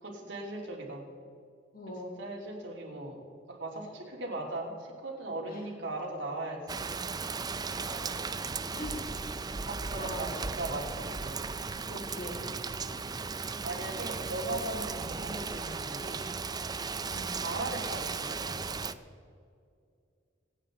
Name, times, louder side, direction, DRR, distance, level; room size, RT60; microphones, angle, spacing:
voice 1, 0.0-1.1 1.9-6.9 9.4-11.5 13.6-16.3 17.3-18.8, right 2 dB, 75° right, -1 dB, 3.1 m, -39 dB
voice 2, 1.7-2.1 5.5-5.7 7.7-8.3 8.8-9.5 10.0-10.3 11.9-12.6 17.1-17.4, left 1 dB, 50° left, 1 dB, 3.0 m, -42 dB
Rain, 6.7-18.9, right 4 dB, 20° right, 0.4 m, -36 dB
25.5 x 9.2 x 3.9 m, 2.3 s
head